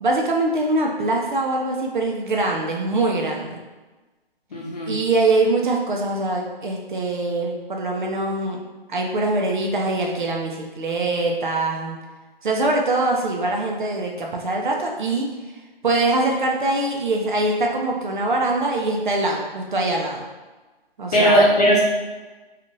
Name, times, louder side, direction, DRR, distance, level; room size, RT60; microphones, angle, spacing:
voice 1, 0.0-3.6 4.9-8.6 8.9-12.0 12.4-15.3 15.8-20.2 21.0-21.4, right 2 dB, 55° right, 0 dB, 0.5 m, -23 dB
voice 2, 4.5-4.9 21.1-21.8, equal, 40° left, -5 dB, 0.8 m, -17 dB
2.7 x 2.4 x 2.9 m, 1.2 s
hypercardioid pair, 165°, 31 cm